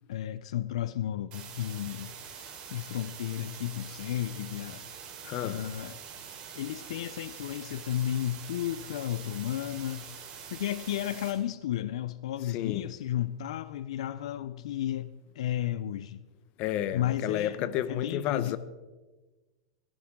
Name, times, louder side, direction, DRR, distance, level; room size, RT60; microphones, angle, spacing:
voice 1, 0.1-2.1 2.7-4.9 5.4-6.0 6.5-10.2 10.5-16.3 16.9-18.6, left 12 dB, 80° left, 0.5 m, -33 dB
sound 1, 1.3-11.3, right 7 dB, 35° right, 4.2 m, -45 dB
voice 2, 5.2-5.6 12.5-12.9 16.6-18.6, left 12 dB, 45° left, 0.9 m, -31 dB
18.5 x 15.0 x 3.7 m
supercardioid pair, 145°, 3 cm